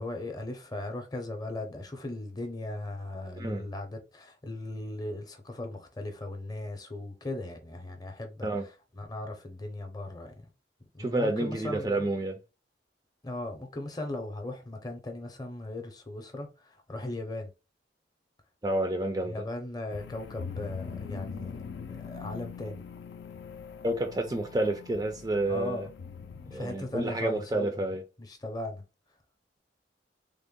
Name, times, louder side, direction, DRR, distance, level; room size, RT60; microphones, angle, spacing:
voice 1, 0.0-10.5 10.9-12.0 13.2-17.5 19.2-21.6 21.9-22.8 25.5-25.9 26.3-27.9 28.2-28.8, left 2 dB, 20° left, 0.6 m, -38 dB
voice 2, 11.0-12.4 18.6-19.3 23.8-25.9 26.5-28.0, right 1 dB, 20° right, 0.4 m, -29 dB
sound 1, 19.9-27.6, left 6 dB, 70° left, 0.4 m, -43 dB
3.5 x 2.1 x 3.6 m
head